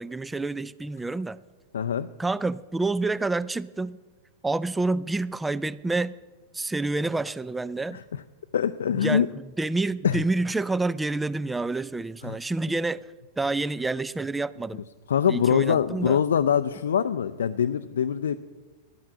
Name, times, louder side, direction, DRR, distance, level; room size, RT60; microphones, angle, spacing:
voice 1, 0.0-1.4 2.2-4.0 4.4-6.1 6.5-8.0 9.0-9.2 9.6-13.0 13.4-14.8 15.3-16.2, right 3 dB, 10° right, 18 dB, 0.4 m, -28 dB
voice 2, 1.7-2.1 7.9-8.0 8.5-9.3 10.0-10.2 12.2-12.4 15.1-18.4, left 8 dB, 75° left, 10 dB, 0.4 m, -23 dB
11.5 x 9.1 x 7.7 m, 1.3 s
hypercardioid pair, 100°, 0 cm